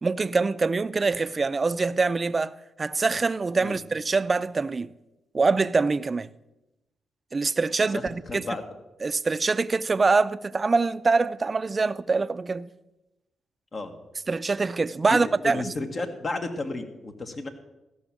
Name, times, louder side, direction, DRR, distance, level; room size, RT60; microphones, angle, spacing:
voice 1, 0.0-4.9 5.3-6.3 7.3-8.4 9.0-12.7 14.3-15.7, right 4 dB, 40° right, 0.5 m, -24 dB
voice 2, 7.8-8.6 13.7-13.9 15.1-17.5, left 2 dB, 45° left, 1.5 m, -32 dB
14.0 x 6.2 x 7.1 m
hypercardioid pair, 45°, 0 cm